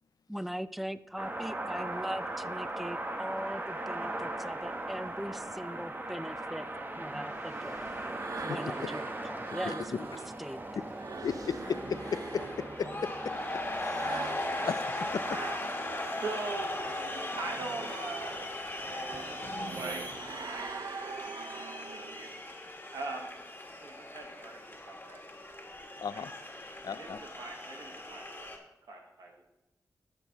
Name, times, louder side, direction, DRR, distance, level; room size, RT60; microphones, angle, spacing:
voice 1, 0.3-6.7 7.0-8.0 8.4-11.0, equal, ahead, 15 dB, 0.4 m, -40 dB
sound 1, 1.2-20.9, right 2 dB, 30° right, 1.0 m, -40 dB
sound 2, 7.0-10.4 10.8-16.1 16.5-22.4, right 5 dB, 65° right, 0.5 m, -44 dB
voice 2, 9.6-10.0 11.2-11.8 12.3-12.4 12.8-12.9 13.8-15.4 26.0-26.3 26.8-27.2, left 6 dB, 75° left, 14 dB, 0.4 m, -35 dB
sound 3, 10.9-28.6, left 2 dB, 30° left, 1.7 m, -39 dB
voice 3, 16.1-16.7 17.4-18.5 18.9-21.1 21.6-22.3 22.9-23.4 23.8-25.2 26.1-26.3 26.8-28.5 28.9-29.4, right 3 dB, 90° right, 1 dB, 1.1 m, -42 dB
13.5 x 6.0 x 2.9 m, 0.90 s
cardioid pair, 50°, 7 cm